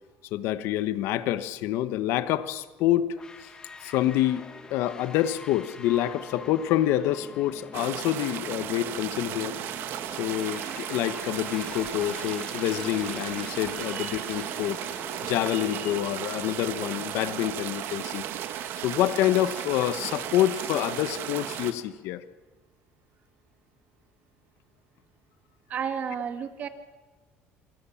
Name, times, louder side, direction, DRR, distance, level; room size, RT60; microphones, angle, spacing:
voice 1, 0.3-3.1 3.4-3.5 3.8-9.6 10.2-14.8 15.2-22.2, left 13 dB, 65° left, 13 dB, 1.2 m, -27 dB
sound 1, 3.2-16.0, left 4 dB, 15° left, 1.8 m, -45 dB
sound 2, 7.7-21.7, right 11 dB, 55° right, 1.7 m, -35 dB
voice 2, 13.7-14.2 15.5-16.1 25.7-26.7, right 7 dB, 35° right, 8 dB, 2.0 m, -34 dB
27.5 x 24.0 x 7.3 m, 1.2 s
cardioid pair, 170°, 5 cm